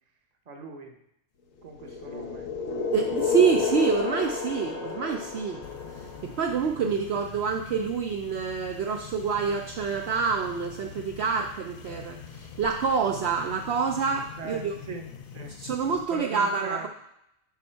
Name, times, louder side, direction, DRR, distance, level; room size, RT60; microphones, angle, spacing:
voice 1, 0.5-1.0 1.6-2.5 14.3-15.6 16.1-16.9, right 4 dB, 35° right, 3 dB, 0.9 m, -41 dB
sound 1, 1.8-6.7, left 5 dB, 85° left, 1.2 m, -31 dB
voice 2, 2.9-5.6 6.0-14.7 15.6-16.9, right 6 dB, 60° right, 2 dB, 0.8 m, -27 dB
sound 2, 5.6-16.0, left 7 dB, 65° left, 0.5 m, -45 dB
7.3 x 5.4 x 4.4 m, 0.78 s
omnidirectional pair, 1.4 m